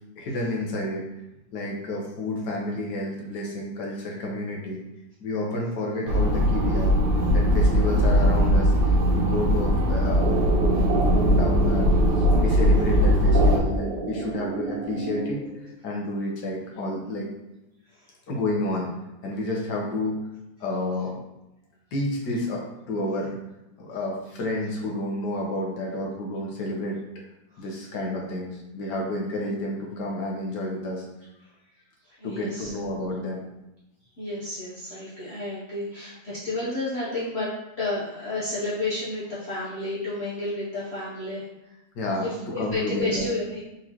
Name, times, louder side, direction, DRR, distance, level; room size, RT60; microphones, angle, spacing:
voice 1, 0.2-1.1 1.5-4.8 5.2-6.9 7.3-11.9 12.1-17.3 18.3-18.9 19.2-20.2 20.6-21.1 21.9-23.3 23.8-27.0 27.6-31.1 32.2-33.4 41.9-43.3, left 1 dB, 80° left, -1 dB, 1.6 m, -30 dB
sound 1, 6.1-13.6, equal, 50° right, 0.7 m, -20 dB
sound 2, 10.2-15.7, right 4 dB, 85° right, 1.3 m, -30 dB
voice 2, 32.2-32.7 34.2-37.5 37.8-41.4 42.2-43.6, left 2 dB, 45° left, -9 dB, 1.0 m, -31 dB
4.1 x 3.6 x 3.0 m, 0.90 s
omnidirectional pair, 1.8 m